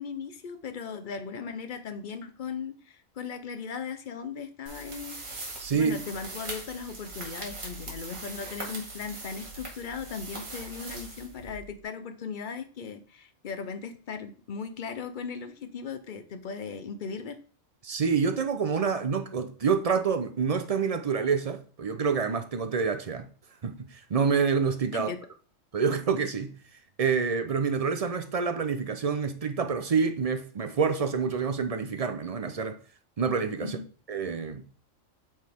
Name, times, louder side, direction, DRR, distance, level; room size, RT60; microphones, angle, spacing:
voice 1, 0.0-5.2 5.7-17.4 24.9-25.2 33.6-33.8, left 6 dB, 45° left, 0.7 m, -37 dB
sound 1, 4.7-11.8, right 2 dB, 75° right, 2.3 m, -41 dB
voice 2, 5.6-6.0 17.8-23.3 23.6-25.1 25.7-26.5 27.0-32.8 33.2-33.8 34.1-34.6, right 5 dB, 45° right, 0.5 m, -27 dB
7.7 x 4.4 x 3.5 m
omnidirectional pair, 1.4 m